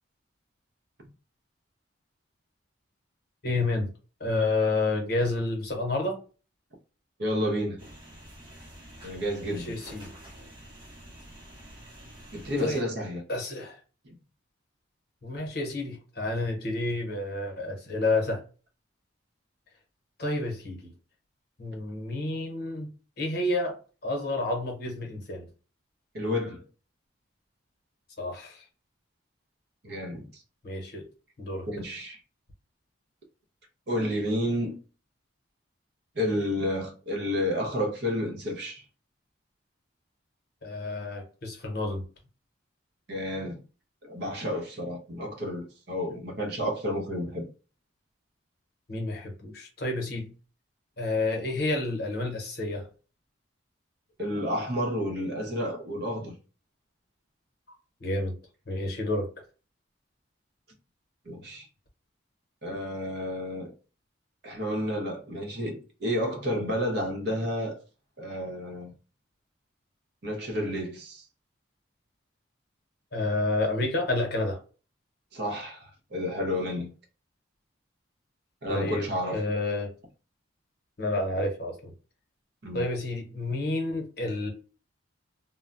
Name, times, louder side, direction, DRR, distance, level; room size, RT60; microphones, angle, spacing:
voice 1, 3.4-3.9 4.2-6.2 9.4-10.1 12.6-12.8 13.3-13.8 15.2-18.4 20.2-20.9 21.6-22.9 23.2-25.5 28.2-28.6 30.6-31.1 31.4-31.7 40.6-42.0 48.9-50.3 51.0-52.9 58.0-58.4 58.7-59.3 73.1-74.6 78.7-79.9 81.0-81.9 82.7-84.5, left 2 dB, 50° left, 0.9 m, -30 dB
voice 2, 7.2-7.8 9.0-9.8 12.3-13.2 14.0-14.1 26.1-26.6 29.8-30.4 31.7-32.2 33.9-34.7 36.1-38.8 43.1-43.6 44.0-47.5 54.2-56.3 61.3-61.7 62.6-63.7 64.4-67.8 68.2-68.9 70.2-71.2 75.3-76.9 78.6-79.4 82.6-82.9, equal, 55° right, 0.8 m, -31 dB
sound 1, 7.8-12.8, right 1 dB, 25° right, 0.8 m, -48 dB
2.2 x 2.1 x 3.8 m
head